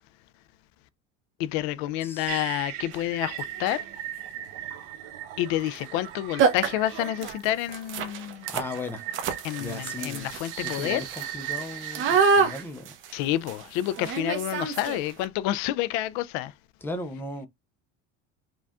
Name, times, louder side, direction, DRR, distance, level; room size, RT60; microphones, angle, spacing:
voice 1, 1.4-3.8 5.4-8.5 9.4-11.0 13.1-16.5, left 14 dB, 70° left, 0.5 m, -29 dB
voice 2, 2.0-2.4 8.5-9.0 9.6-10.3 10.6-12.9 16.8-17.5, left 2 dB, 10° left, 0.6 m, -36 dB
sound 1, 2.3-7.5 8.4-12.6, right 11 dB, 70° right, 1.2 m, -38 dB
sound 2, 2.9-3.0 3.6-3.9 5.6-5.8 6.1-6.2 6.4-15.2, right 5 dB, 45° right, 1.0 m, -28 dB
5.0 x 2.4 x 3.5 m
cardioid pair, 160°, 29 cm